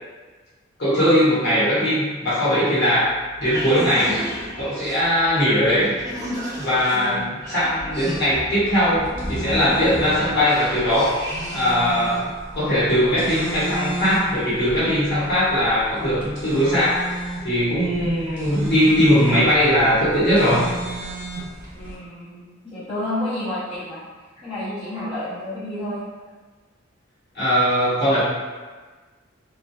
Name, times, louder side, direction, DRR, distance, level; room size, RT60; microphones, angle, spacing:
voice 1, 0.8-3.1 3.4-4.2 4.6-5.9 6.6-11.2 11.5-12.2 12.5-17.0 17.4-20.7 27.3-28.2, equal, 55° left, -11 dB, 1.1 m, -20 dB
sound 1, 3.0-11.9, equal, 15° right, 0.4 m, -32 dB
voice 2, 6.9-7.2 21.7-24.0 24.4-26.0, left 1 dB, 30° left, -14 dB, 0.9 m, -30 dB
sound 2, 9.0-22.0, right 2 dB, 45° right, 0.9 m, -34 dB
2.7 x 2.2 x 2.2 m, 1.4 s
head